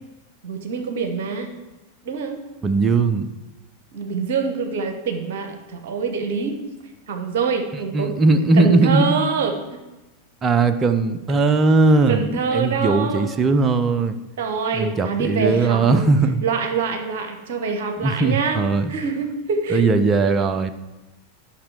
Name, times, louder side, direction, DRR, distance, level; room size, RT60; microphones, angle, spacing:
voice 1, 0.4-1.5 2.0-2.4 3.9-6.6 7.1-8.1 8.6-9.8 11.3-11.4 12.1-13.3 14.4-16.0 16.4-18.6 18.9-19.8 20.2-20.4, right 5 dB, 55° right, 6 dB, 1.1 m, -25 dB
voice 2, 2.6-3.3 7.9-9.2 10.4-14.2 14.7-16.4 18.0-18.9 19.7-20.7, right 3 dB, 20° right, 9 dB, 0.6 m, -19 dB
10.0 x 6.0 x 4.8 m, 1.1 s
figure-of-eight pair, 90°, 0 cm